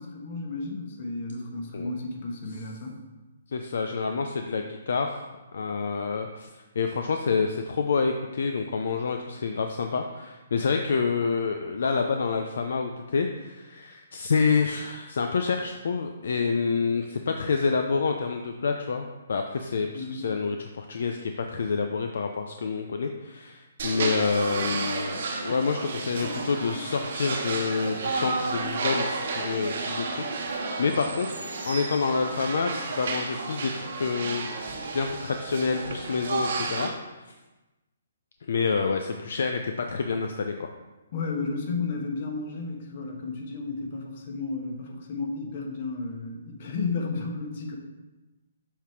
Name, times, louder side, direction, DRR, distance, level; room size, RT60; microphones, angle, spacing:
voice 1, 0.0-3.0 19.9-20.2 41.1-47.8, left 3 dB, 50° left, 1 dB, 1.2 m, -33 dB
voice 2, 3.5-6.5 6.8-34.5 34.9-36.9 37.2-37.3 38.4-40.7, left 5 dB, 70° left, 5 dB, 0.5 m, -28 dB
sound 1, 23.8-36.9, right 3 dB, 60° right, 1.2 m, -32 dB
7.2 x 3.6 x 4.6 m, 1.1 s
hypercardioid pair, 150°, 0 cm